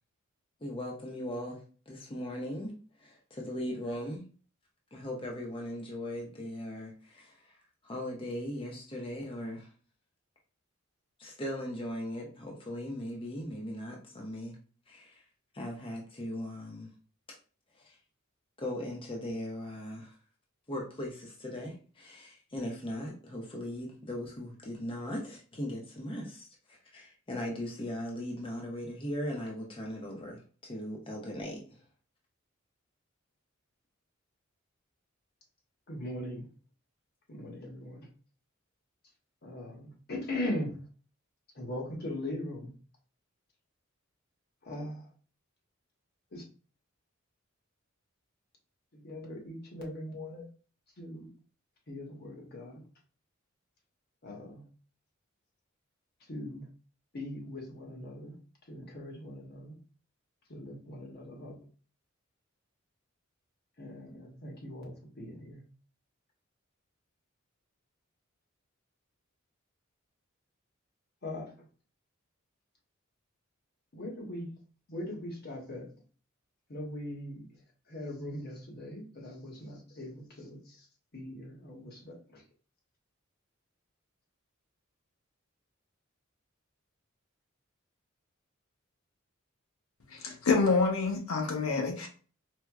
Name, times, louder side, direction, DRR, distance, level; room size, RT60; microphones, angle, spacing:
voice 1, 0.6-4.2 4.9-7.6 7.8-9.7 11.2-14.6 14.9-15.2 15.5-16.9 17.8-17.9 18.6-20.1 20.7-31.6, left 1 dB, 25° left, 0.6 m, -39 dB
voice 2, 35.9-36.5 37.3-38.1 39.4-40.8 41.5-42.7 44.6-45.1 46.3-46.4 48.9-50.5 51.0-51.3 51.9-52.8 54.2-54.6 56.3-56.7 57.1-58.4 58.7-59.8 60.5-61.6 63.8-65.6 71.2-71.5 73.9-74.5 74.9-75.9 76.7-77.5 77.9-80.9 81.1-82.4, left 1 dB, 50° left, 1.0 m, -40 dB
voice 3, 90.1-92.1, left 4 dB, 90° left, 0.7 m, -27 dB
4.4 x 2.1 x 2.3 m
head